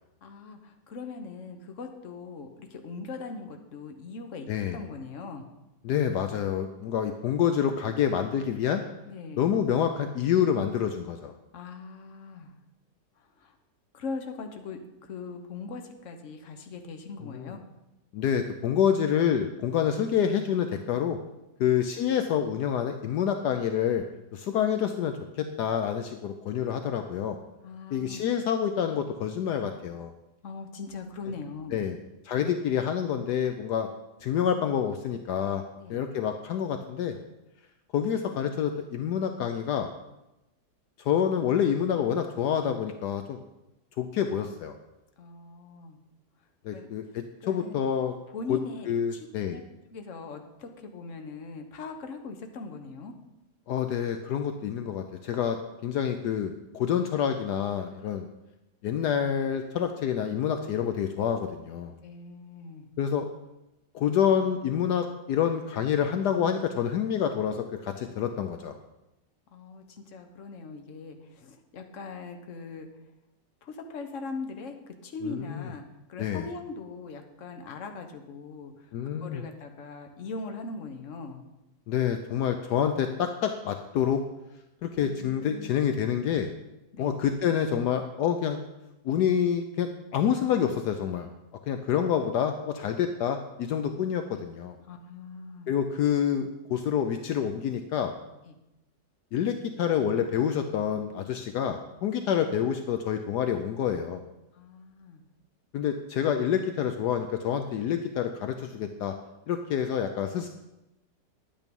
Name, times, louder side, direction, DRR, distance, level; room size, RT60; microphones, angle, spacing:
voice 1, 0.2-5.5 9.1-9.4 11.5-12.6 13.4-13.5 13.9-17.6 27.6-28.2 30.4-31.9 35.8-36.0 45.2-46.0 46.7-46.9 47.4-47.8 48.3-49.6 49.9-53.1 62.0-62.9 69.5-72.9 73.6-74.8 75.0-78.9 79.2-81.4 84.9-85.8 86.9-87.2 94.8-95.7 98.5-98.6 104.5-105.3, left 4 dB, 50° left, 6 dB, 1.3 m, -40 dB
voice 2, 4.5-4.8 5.8-8.8 9.4-11.3 17.2-17.5 18.1-21.2 21.6-24.0 24.3-27.4 27.9-30.1 31.7-32.0 32.2-33.9 34.2-35.6 35.9-37.2 37.9-39.9 41.0-43.4 44.0-44.7 46.6-48.2 48.5-48.6 48.9-49.6 53.7-58.3 58.8-61.9 63.0-63.3 63.9-68.8 75.2-75.7 76.2-76.5 78.9-79.4 81.9-84.2 84.8-86.5 87.0-88.6 89.0-91.3 91.7-94.8 95.7-98.1 99.3-104.2 105.7-109.2 109.5-110.5, left 8 dB, 75° left, 7 dB, 1.2 m, -27 dB
10.5 x 9.0 x 5.3 m, 0.94 s
omnidirectional pair, 1.8 m